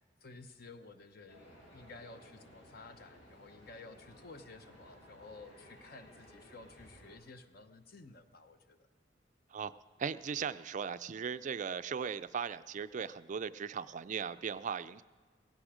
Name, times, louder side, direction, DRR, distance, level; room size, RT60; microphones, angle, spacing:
voice 1, 0.2-8.8, left 3 dB, 55° left, 9 dB, 0.9 m, -53 dB
sound 1, 1.3-7.2, equal, 90° left, 6.2 m, -58 dB
voice 2, 10.0-15.0, right 6 dB, 45° right, 14 dB, 0.4 m, -38 dB
16.5 x 16.0 x 5.0 m, 1.4 s
head